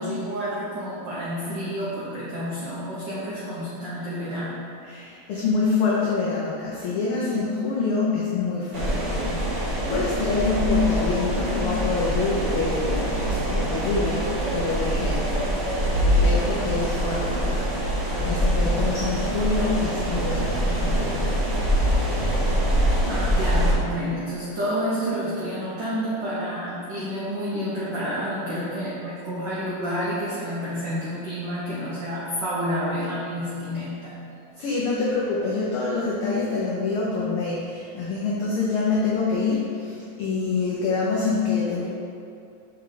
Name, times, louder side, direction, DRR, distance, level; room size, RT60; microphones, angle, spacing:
voice 1, 0.0-4.6 23.1-34.2, equal, 90° right, -8 dB, 0.9 m, -29 dB
voice 2, 4.8-13.1 13.5-14.3 14.5-15.3 16.0-21.5 34.6-41.9, left 4 dB, 90° left, -5 dB, 1.2 m, -26 dB
sound 1, 8.7-23.7, equal, 60° right, 1.3 m, -24 dB
6.1 x 4.6 x 3.8 m, 2.5 s
omnidirectional pair, 3.4 m